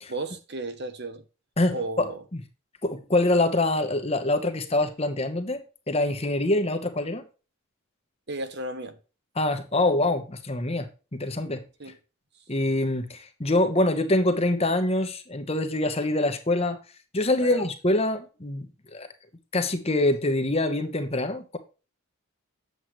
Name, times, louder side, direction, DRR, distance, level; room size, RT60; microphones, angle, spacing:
voice 1, 0.1-1.2 1.7-2.2 8.3-9.0 11.8-12.0 17.4-17.6, right 2 dB, 50° right, 1.0 m, -33 dB
voice 2, 1.6-2.4 2.8-5.6 5.9-7.2 9.4-11.6 12.5-16.8 17.1-18.7 18.9-19.1 19.5-21.6, left 2 dB, 25° left, 1.0 m, -25 dB
8.0 x 7.8 x 3.1 m
head